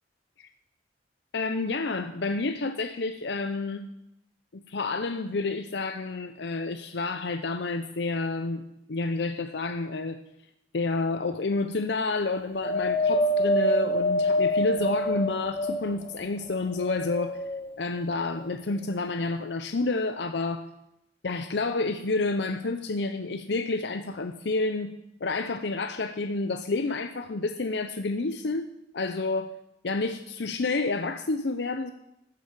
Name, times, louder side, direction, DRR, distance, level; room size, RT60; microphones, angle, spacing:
voice 1, 1.3-3.9 4.5-10.2 10.7-17.4 17.8-20.6 21.2-24.9 25.2-28.7 28.9-29.5 29.8-31.9, left 3 dB, 65° left, 9 dB, 0.6 m, -29 dB
Wind, 12.6-16.1 16.7-17.7 18.5-18.6, left 1 dB, 30° left, 0.8 m, -26 dB
14.0 x 7.6 x 7.5 m, 0.85 s
head